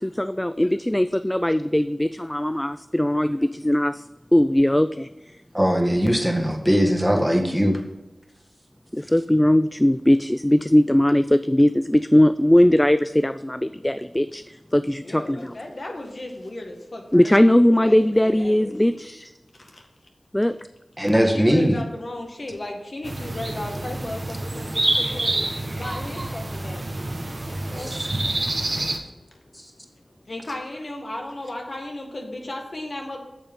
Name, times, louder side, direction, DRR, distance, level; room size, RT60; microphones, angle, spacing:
voice 1, 0.0-3.9 4.3-5.1 8.9-14.4 14.7-15.5 17.1-19.3 20.3-20.6, left 1 dB, 15° left, 12 dB, 0.3 m, -19 dB
voice 2, 5.5-7.8 21.0-21.8 27.8-28.0 29.5-29.7, equal, 5° right, 2 dB, 1.7 m, -20 dB
voice 3, 14.8-19.0 19.5-19.9 21.3-27.0 27.5-33.2, left 1 dB, 65° left, 1 dB, 1.8 m, -36 dB
sound 1, 23.0-29.0, right 1 dB, 50° right, 1.4 m, -27 dB
8.9 x 7.0 x 3.7 m, 1.0 s
cardioid pair, 40°, 0 cm